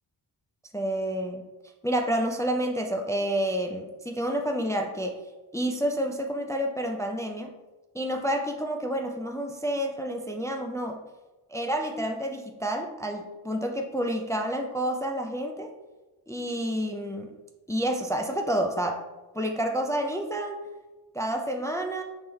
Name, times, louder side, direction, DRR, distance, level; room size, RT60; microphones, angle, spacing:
voice 1, 0.7-1.5 1.8-5.2 5.5-7.6 7.9-11.0 11.5-15.7 16.3-17.4 17.7-19.0 19.3-20.6 21.1-22.0, right 1 dB, 10° left, 3 dB, 0.3 m, -29 dB
4.3 x 3.2 x 3.6 m, 1.1 s
wide cardioid pair, 105°, 42 cm